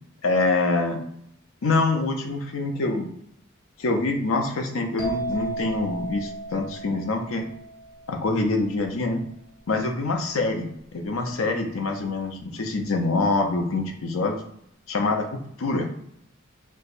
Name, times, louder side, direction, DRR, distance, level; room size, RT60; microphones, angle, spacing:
voice 1, 0.2-1.0 1.6-3.1 3.8-7.4 8.1-9.2 9.7-14.3 14.9-15.9, left 3 dB, 80° left, 4 dB, 0.5 m, -25 dB
sound 1, 5.0-8.6, right 2 dB, 5° left, 0.8 m, -34 dB
4.4 x 2.1 x 2.5 m, 0.71 s
head